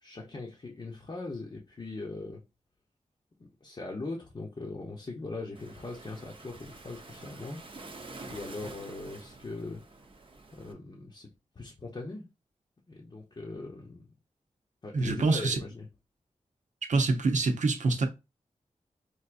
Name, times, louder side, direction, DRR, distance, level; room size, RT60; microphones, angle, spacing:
voice 1, 0.0-2.4 3.4-7.6 8.3-9.8 10.5-11.3 11.5-12.2 12.9-14.1 14.8-15.9, left 3 dB, 40° left, 0.8 m, -40 dB
Waves surf, 5.5-10.7, right 2 dB, 45° right, 0.7 m, -47 dB
voice 2, 14.9-15.6 16.9-18.1, right 3 dB, 80° right, 0.7 m, -25 dB
4.5 x 2.7 x 2.5 m
wide cardioid pair, 95°, 12 cm